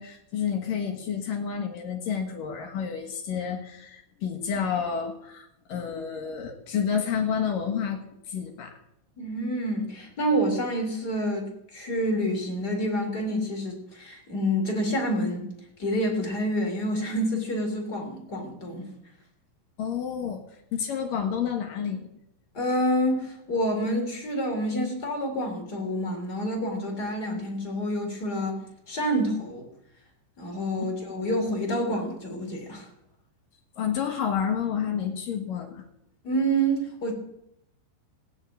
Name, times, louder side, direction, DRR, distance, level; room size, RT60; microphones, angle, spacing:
voice 1, 0.0-8.0 8.3-8.8 19.8-20.4 20.7-22.1 30.8-30.9 33.8-35.8, left 7 dB, 60° left, 4 dB, 2.5 m, -30 dB
voice 2, 9.2-15.5 15.8-18.9 22.5-29.7 30.4-32.8 36.2-37.1, equal, 25° left, 2 dB, 3.3 m, -28 dB
16.5 x 10.0 x 8.5 m, 0.78 s
omnidirectional pair, 5.7 m